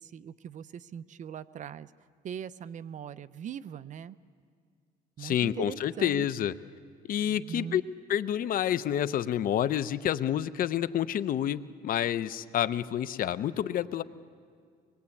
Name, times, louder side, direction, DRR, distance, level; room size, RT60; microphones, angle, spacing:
voice 1, 0.0-1.9 2.2-4.2 5.2-6.3 7.3-7.8, right 8 dB, 45° right, 15 dB, 0.6 m, -41 dB
voice 2, 5.2-6.5 7.1-7.8 8.1-14.0, left 10 dB, 55° left, 14 dB, 0.7 m, -28 dB
23.5 x 21.0 x 8.4 m, 2.2 s
cardioid pair, 110°, 17 cm